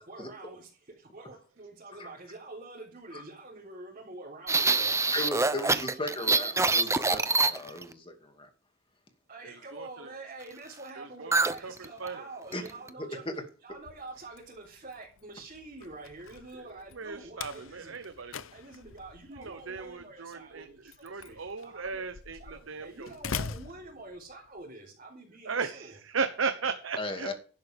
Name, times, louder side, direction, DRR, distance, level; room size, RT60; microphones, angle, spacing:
voice 1, 0.0-7.3 9.3-13.3 13.6-18.0 18.5-22.1 22.3-26.0, right 2 dB, 40° right, 3.7 m, -47 dB
sound 1, 4.5-7.9 11.3-11.6 11.8-12.1 12.5-12.9, right 3 dB, 15° right, 0.7 m, -25 dB
voice 2, 5.1-8.5 12.5-12.6 13.0-13.3 27.0-27.3, left 2 dB, 25° left, 2.4 m, -37 dB
voice 3, 9.4-10.1 11.0-11.3 11.6-12.3 16.5-16.6 16.9-18.3 19.3-20.7 21.0-23.2 25.4-27.3, right 5 dB, 70° right, 1.0 m, -36 dB
Slam, 13.7-24.6, left 5 dB, 75° left, 0.8 m, -44 dB
13.0 x 11.5 x 3.6 m
head